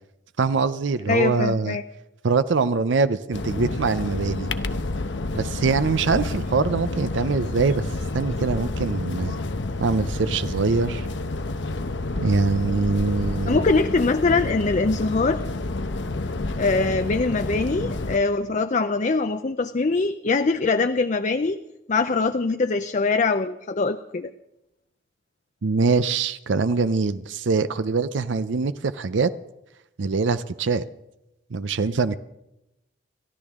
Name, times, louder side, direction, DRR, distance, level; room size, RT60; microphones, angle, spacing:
voice 1, 0.4-1.8 2.2-4.5 5.3-7.8 8.1-9.4 9.8-11.1 12.2-13.6 25.6-29.3 30.0-30.8 31.5-32.2, right 4 dB, 75° right, 0.6 m, -23 dB
voice 2, 1.1-1.8 13.5-15.4 16.6-21.6 21.9-24.3, left 3 dB, 40° left, 0.5 m, -23 dB
sound 1, 3.3-18.2, left 2 dB, 70° left, 0.9 m, -29 dB
28.5 x 14.0 x 3.7 m
head